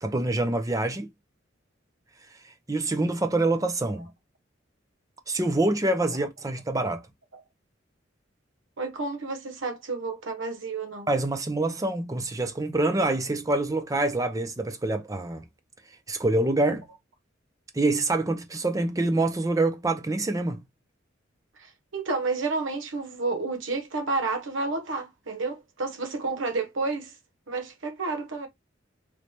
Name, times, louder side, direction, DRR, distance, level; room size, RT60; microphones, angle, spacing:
voice 1, 0.0-1.1 2.7-4.1 5.3-7.0 11.1-15.4 16.1-16.8 17.7-20.6, right 2 dB, 15° right, 0.5 m, -26 dB
voice 2, 8.8-11.1 21.6-27.2 27.5-28.5, right 3 dB, 80° right, 0.9 m, -30 dB
3.2 x 2.7 x 3.2 m
head